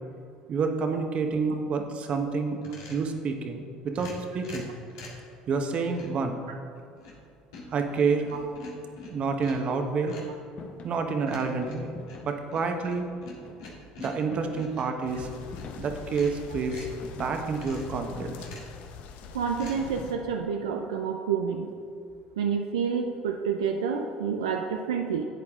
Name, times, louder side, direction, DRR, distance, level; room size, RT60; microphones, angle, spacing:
voice 1, 0.5-2.6 2.9-4.7 5.5-6.4 7.7-8.2 9.1-10.1 10.8-11.9 12.2-13.1 14.0-15.3 15.8-16.9 17.2-18.4, right 4 dB, 45° right, 5 dB, 1.1 m, -28 dB
sound 1, 2.6-3.1 3.9-5.3 5.9-6.2 6.8-7.3 7.5-9.7 10.1-10.4 11.3-15.7 16.1-17.0 17.6-18.0 18.3-18.8 19.5-19.8, left 3 dB, 85° left, 1.9 m, -45 dB
sound 2, 10.6-11.0 11.9-12.5 13.3-13.8 14.3-14.8 15.5-16.1 17.0-17.5 18.1-18.7 19.8-20.4, left 4 dB, 50° left, 1.2 m, -45 dB
sound 3, 15.0-20.1, left 7 dB, 65° left, 0.8 m, -44 dB
voice 2, 19.3-21.7 22.4-25.2, right 6 dB, 90° right, 2 dB, 0.6 m, -28 dB
11.0 x 8.4 x 3.7 m, 2.4 s
hypercardioid pair, 75°, 3 cm